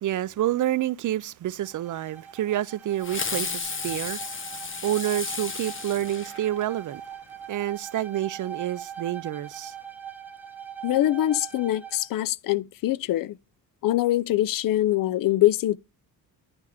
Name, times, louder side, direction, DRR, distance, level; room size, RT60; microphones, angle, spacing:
voice 1, 0.0-7.0 7.5-9.7, right 13 dB, 55° right, 0.5 m, -28 dB
Bowed string instrument, 1.6-12.1, right 8 dB, 5° right, 0.9 m, -42 dB
Fireworks, 3.0-6.9, left 5 dB, 35° left, 1.0 m, -33 dB
voice 2, 10.8-13.4 13.8-15.8, left 14 dB, 60° left, 0.5 m, -23 dB
9.7 x 3.4 x 4.9 m
cardioid pair, 105°, 38 cm